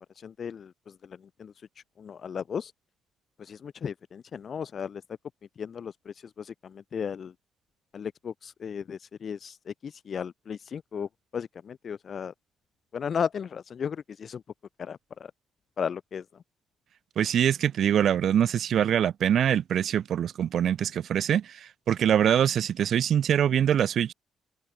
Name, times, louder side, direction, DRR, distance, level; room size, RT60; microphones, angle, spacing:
voice 1, 0.1-2.7 3.4-5.0 5.6-7.3 7.9-12.3 12.9-14.4 14.8-15.3 15.8-16.4, left 7 dB, 50° left, 1.2 m, -35 dB
voice 2, 17.2-24.1, right 9 dB, 65° right, 0.3 m, -24 dB
cardioid pair, 90°, 0 cm